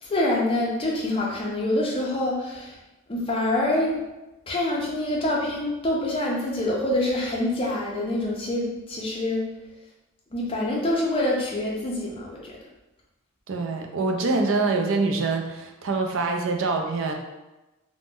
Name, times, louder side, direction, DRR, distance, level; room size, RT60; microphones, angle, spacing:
voice 1, 0.0-2.8 3.1-4.0 4.5-9.4 10.3-12.6, left 1 dB, 25° left, -3 dB, 0.5 m, -26 dB
voice 2, 13.5-17.1, right 3 dB, 55° right, 2 dB, 0.4 m, -25 dB
2.5 x 2.1 x 3.5 m, 1.0 s
head